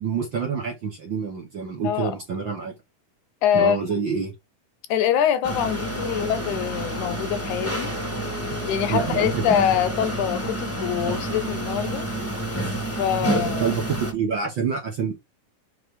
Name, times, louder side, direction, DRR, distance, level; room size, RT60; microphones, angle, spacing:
voice 1, 0.0-2.7 3.5-4.3 8.9-9.5 13.6-15.2, right 6 dB, 55° right, 1.4 m, -27 dB
voice 2, 3.4-3.8 4.9-7.9 8.6-12.1 13.0-13.7, left 10 dB, 75° left, 2.1 m, -24 dB
sound 1, 5.4-14.1, right 1 dB, 10° left, 0.9 m, -29 dB
6.2 x 3.4 x 5.1 m
omnidirectional pair, 3.6 m